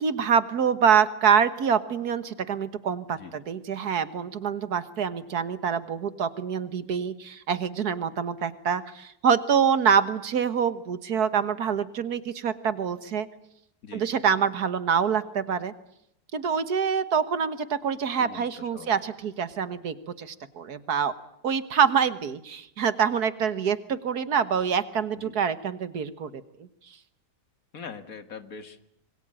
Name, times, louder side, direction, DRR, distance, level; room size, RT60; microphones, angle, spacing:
voice 1, 0.0-13.3 13.9-15.7 16.3-21.1 21.4-26.3, right 7 dB, 70° right, 13 dB, 1.8 m, -25 dB
voice 2, 18.2-19.0 25.2-25.4 27.7-28.9, left 5 dB, 55° left, 10 dB, 2.3 m, -43 dB
26.5 x 22.0 x 9.0 m, 0.75 s
omnidirectional pair, 1.7 m